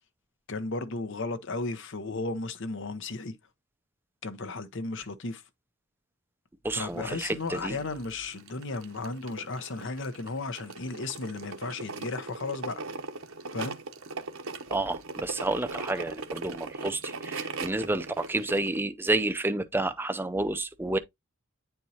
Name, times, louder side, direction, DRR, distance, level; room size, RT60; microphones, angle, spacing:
voice 1, 0.5-3.3 4.2-5.4 6.7-12.8 13.5-13.8, left 3 dB, 60° left, 0.8 m, -34 dB
voice 2, 6.6-7.8 14.7-21.0, right 2 dB, 10° right, 0.5 m, -30 dB
sound 1, 6.9-18.8, right 4 dB, 70° right, 0.9 m, -39 dB
9.5 x 4.5 x 2.8 m
head